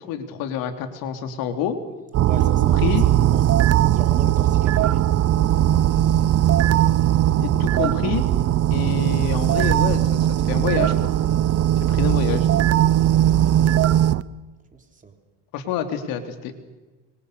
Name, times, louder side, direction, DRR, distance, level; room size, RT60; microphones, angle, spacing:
voice 1, 0.1-1.8 2.8-3.0 7.4-8.2 8.7-11.1 11.8-12.5 15.5-16.5, left 8 dB, 70° left, 6 dB, 3.4 m, -27 dB
sound 1, 2.1-14.2, right 12 dB, 40° right, 0.8 m, -19 dB
voice 2, 2.2-3.5 3.9-5.3 7.7-7.9 11.9-12.5 13.1-13.8 14.7-15.2, right 4 dB, 20° right, 5 dB, 3.7 m, -39 dB
25.5 x 24.0 x 6.8 m, 1.2 s
supercardioid pair, 110°, 36 cm